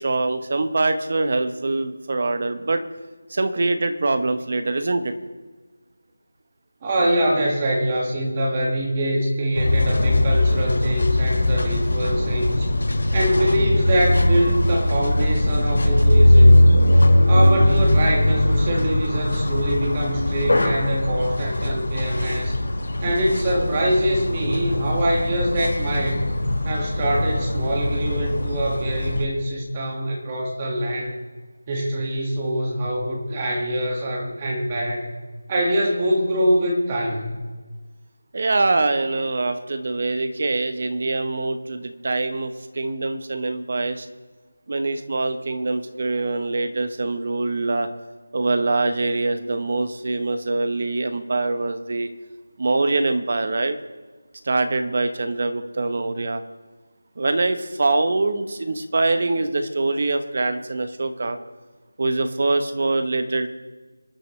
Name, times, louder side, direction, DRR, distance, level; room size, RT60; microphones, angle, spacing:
voice 1, 0.0-2.8 3.3-5.1 38.3-44.1 44.7-47.9 48.3-52.1 52.6-53.8 54.4-56.4 57.2-61.4 62.0-63.5, right 2 dB, 30° right, 8 dB, 1.0 m, -24 dB
voice 2, 6.8-12.7 13.1-16.6 17.3-22.5 23.0-26.3 26.7-31.2 31.7-35.1 35.5-37.5, right 1 dB, 15° right, -2 dB, 1.8 m, -24 dB
sound 1, 9.5-29.2, left 1 dB, 80° left, 5.1 m, -20 dB
26.0 x 11.0 x 3.2 m, 1.3 s
figure-of-eight pair, 180°, 0 cm